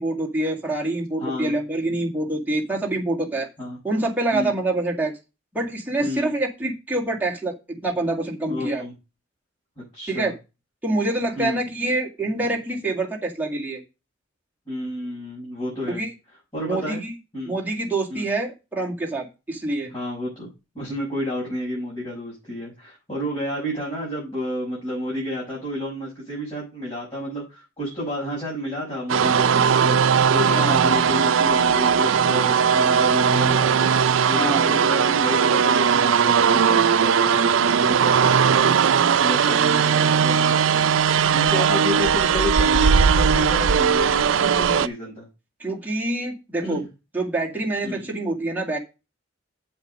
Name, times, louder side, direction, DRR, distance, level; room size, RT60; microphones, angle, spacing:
voice 1, 0.0-3.5 3.8-5.1 5.5-8.8 10.1-10.3 10.8-13.8 15.9-16.1 16.6-17.1 17.5-19.9 30.5-30.9 34.3-34.6 41.5-41.8 45.6-46.8 47.1-48.8, right 2 dB, 10° right, -2 dB, 2.0 m, -26 dB
voice 2, 1.2-1.5 3.6-3.8 4.3-4.5 6.0-6.3 8.5-8.9 9.8-10.3 11.4-11.6 14.7-16.0 16.5-17.0 17.3-17.6 18.1-18.3 19.9-41.0 41.3-45.3 46.6-46.9 47.8-48.1, left 1 dB, 25° left, -6 dB, 5.9 m, -31 dB
sound 1, 29.1-44.9, right 7 dB, 90° right, 0.5 m, -19 dB
7.8 x 7.1 x 5.2 m, 0.28 s
head